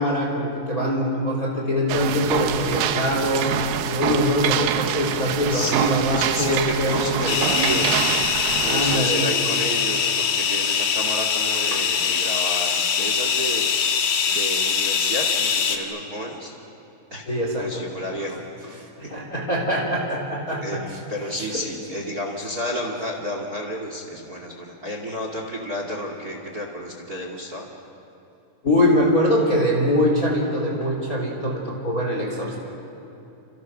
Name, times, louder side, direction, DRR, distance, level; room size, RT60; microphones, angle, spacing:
voice 1, 0.0-7.6 8.6-9.3 11.7-11.8 17.3-17.7 18.8-21.0 21.3-21.5 28.6-32.6, left 1 dB, 20° left, 0 dB, 3.3 m, -23 dB
sound 1, 1.9-9.0, right 10 dB, 75° right, 3.2 m, -25 dB
voice 2, 5.5-8.0 8.6-13.7 14.3-16.5 17.1-17.2 17.6-18.8 20.6-27.6, equal, 40° right, 2 dB, 1.3 m, -31 dB
sound 2, 7.3-15.8, left 6 dB, 60° left, 2.9 m, -23 dB
30.0 x 28.5 x 6.2 m, 2.9 s
omnidirectional pair, 6.0 m